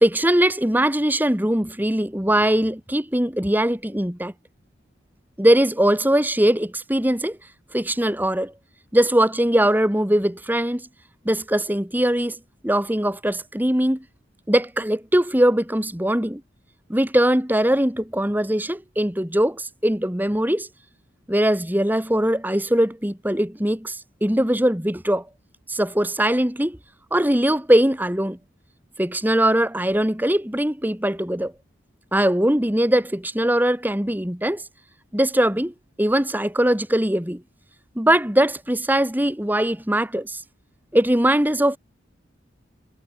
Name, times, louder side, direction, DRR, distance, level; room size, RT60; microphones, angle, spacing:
voice 1, 0.0-4.3 5.4-7.4 7.7-8.5 8.9-10.9 11.2-12.4 12.6-14.0 14.5-16.4 16.9-20.7 21.3-25.3 25.7-26.8 27.1-28.4 29.0-31.5 32.1-34.6 35.1-37.4 37.9-40.4 40.9-41.8, right 1 dB, 10° right, 1.7 m, -21 dB
head